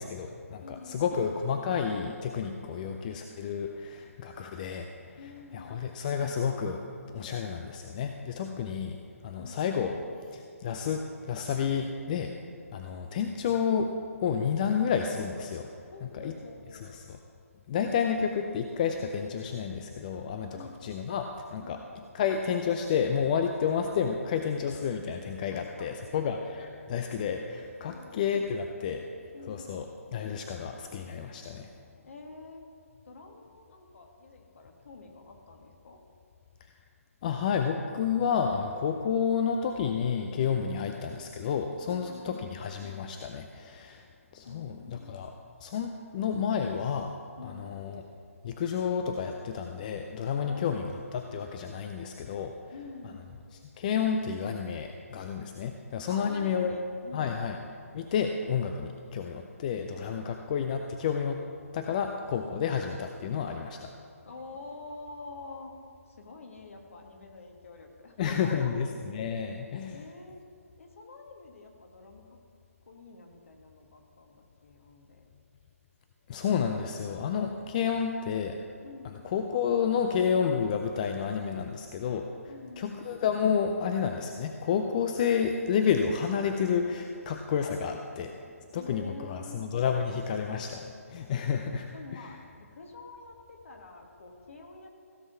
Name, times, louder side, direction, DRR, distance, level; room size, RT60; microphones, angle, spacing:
voice 1, 0.0-5.2 5.5-6.8 7.1-9.0 9.2-10.0 10.3-12.3 12.7-13.9 14.2-15.7 16.2-16.3 16.9-17.2 17.7-21.8 22.1-29.0 29.4-29.9 30.1-31.7 37.2-44.0 44.3-45.3 45.6-47.1 47.4-48.0 48.4-52.5 53.5-56.8 57.1-57.6 57.9-61.4 61.7-63.9 68.2-70.0 76.3-78.6 79.2-82.3 82.8-88.3 88.7-92.3, left 7 dB, 30° left, 5 dB, 0.5 m, -30 dB
voice 2, 0.6-1.2 5.2-5.8 9.4-9.6 15.9-16.9 20.5-20.9 21.6-21.8 25.5-26.3 27.8-28.2 29.3-29.8 32.0-32.6 33.1-36.0 40.5-40.9 41.9-42.5 44.5-45.2 47.4-47.8 50.4-50.9 52.7-53.2 56.1-57.6 64.3-65.7 66.1-68.9 69.9-70.4 70.8-72.4 72.9-75.3 78.8-79.2 82.5-83.0 88.7-89.6 91.9-94.9, left 3 dB, 60° left, 3 dB, 1.8 m, -47 dB
16.0 x 5.5 x 5.8 m, 2.3 s
figure-of-eight pair, 145°, 8 cm